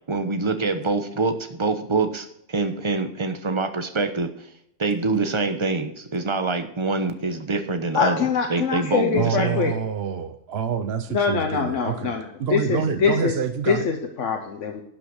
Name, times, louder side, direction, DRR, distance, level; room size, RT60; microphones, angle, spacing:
voice 1, 0.1-4.3 4.8-8.2 8.5-9.7 12.9-13.0, right 3 dB, 25° right, 8 dB, 1.0 m, -25 dB
voice 2, 7.9-9.7 11.1-13.3 13.7-14.8, left 6 dB, 85° left, 3 dB, 1.4 m, -24 dB
voice 3, 9.2-12.1 12.4-13.9, right 7 dB, 60° right, 9 dB, 0.9 m, -27 dB
11.5 x 6.1 x 6.4 m, 0.75 s
omnidirectional pair, 1.2 m